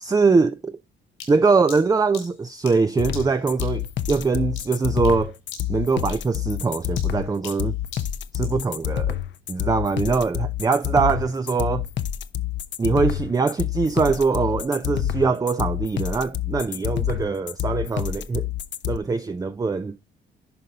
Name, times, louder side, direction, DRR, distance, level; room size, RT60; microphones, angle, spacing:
voice 1, 0.0-0.8 1.3-5.3 5.7-7.7 8.3-9.2 9.5-11.8 12.8-18.5 18.9-20.0, right 4 dB, 20° right, 0.5 m, -22 dB
sound 1, 1.2-5.2 5.5-5.8 6.1-8.6, left 7 dB, 90° left, 4.0 m, -42 dB
sound 2, 3.0-19.0, left 11 dB, 65° left, 0.8 m, -27 dB
11.0 x 3.9 x 4.0 m
cardioid pair, 90°, 20 cm